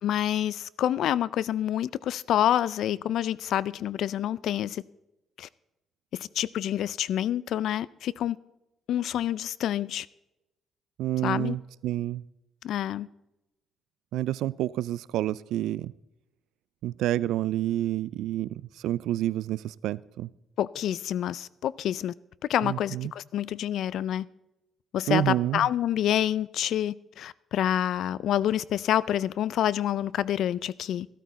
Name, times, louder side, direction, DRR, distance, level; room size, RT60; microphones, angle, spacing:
voice 1, 0.0-4.8 5.4-5.5 6.1-8.4 8.9-10.1 11.2-11.6 12.6-13.1 20.6-22.1 22.5-24.3 24.9-31.1, left 11 dB, 75° left, 0.3 m, -27 dB
voice 2, 11.0-12.2 14.1-15.9 16.8-20.3 22.6-23.1 25.1-25.7, right 13 dB, 85° right, 0.3 m, -29 dB
13.5 x 12.5 x 4.1 m
cardioid pair, 90°, 0 cm